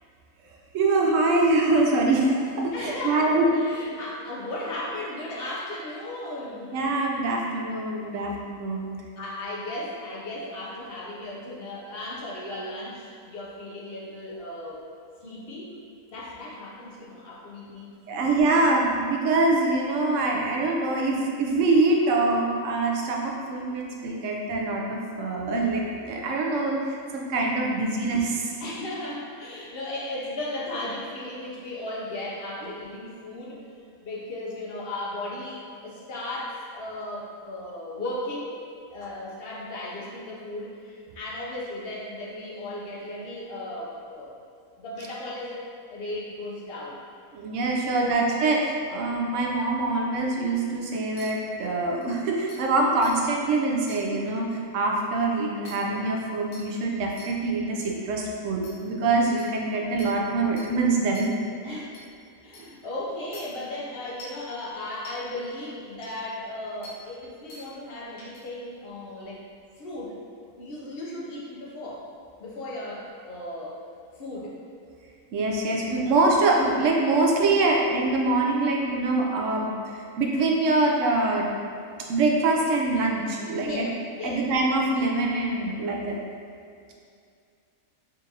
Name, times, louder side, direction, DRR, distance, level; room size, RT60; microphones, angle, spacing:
voice 1, 0.7-3.5 6.7-9.0 18.1-28.6 47.3-61.3 61.6-61.9 75.3-81.5 82.1-83.9 84.2-86.2, right 2 dB, 70° right, -1 dB, 0.9 m, -24 dB
voice 2, 2.7-6.7 9.2-14.9 15.2-15.7 16.1-18.4 28.6-33.7 34.0-38.5 38.9-44.4 44.8-45.6 45.9-47.0 47.8-48.3 54.6-54.7 61.6-61.9 62.4-69.4 69.8-70.2 70.6-72.1 72.4-73.8 74.2-74.6 83.5-84.4, left 1 dB, 55° left, -5 dB, 0.8 m, -36 dB
sound 1, 51.2-51.3 52.0-52.1 52.5-52.6 53.0-53.1 53.9-54.0 55.6-55.7 56.5-56.6 57.2-57.3 57.8-57.9 58.6-58.7 59.4-59.5 60.0-60.1 60.6-60.7 61.1-61.3 61.9-62.0 62.5-62.6 63.3-63.4 64.2-64.4 65.0-65.1 66.0-66.1 66.8-66.9 67.5-67.6 68.2-68.4, left 1 dB, 80° left, 1.2 m, -44 dB
5.2 x 2.5 x 2.8 m, 2.3 s
omnidirectional pair, 1.4 m